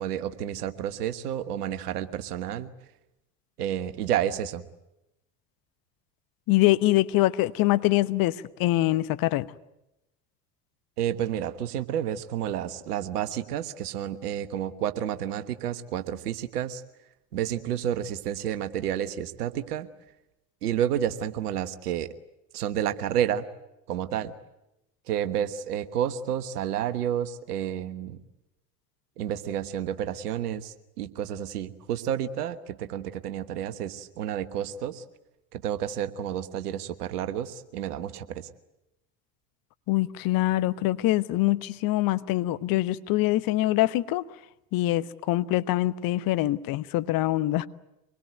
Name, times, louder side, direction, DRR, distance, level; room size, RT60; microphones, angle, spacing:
voice 1, 0.0-2.7 3.6-4.6 11.0-16.8 17.3-19.9 20.6-22.1 22.5-23.4 23.9-24.4 25.1-28.2 29.2-35.0 35.5-38.5, right 10 dB, 70° right, 1.4 m, -30 dB
voice 2, 6.5-9.5 39.9-44.2 44.7-47.7, left 17 dB, 45° left, 1.0 m, -24 dB
25.0 x 21.0 x 9.3 m
figure-of-eight pair, 70°, 48 cm